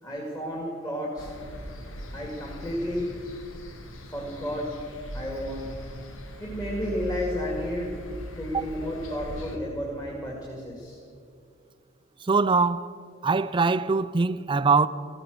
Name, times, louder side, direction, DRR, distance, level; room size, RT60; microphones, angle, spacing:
voice 1, 0.0-1.3 2.1-3.0 4.1-4.7 5.1-5.7 6.4-7.9 8.4-11.0, equal, 20° left, 2.3 m, -32 dB
sound 1, 1.2-9.6, equal, 90° left, 1.6 m, -40 dB
voice 2, 12.2-12.9 13.2-14.9, right 4 dB, 25° right, 0.4 m, -22 dB
15.5 x 14.0 x 6.6 m
head